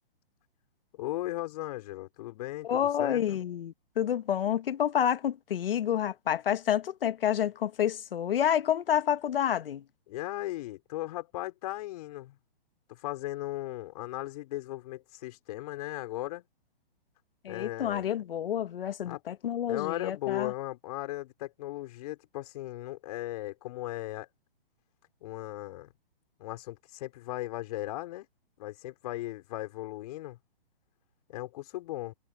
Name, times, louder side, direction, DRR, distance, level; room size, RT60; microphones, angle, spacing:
voice 1, 0.9-3.4 10.1-12.4 12.9-16.4 17.5-18.1 19.0-19.2 19.7-24.3 25.2-25.9 26.4-28.3 28.6-30.4 31.3-32.1, left 16 dB, 40° left, 5.0 m, -37 dB
voice 2, 2.6-9.8 17.4-20.5, left 10 dB, 65° left, 1.4 m, -29 dB
hypercardioid pair, 155°, 30 cm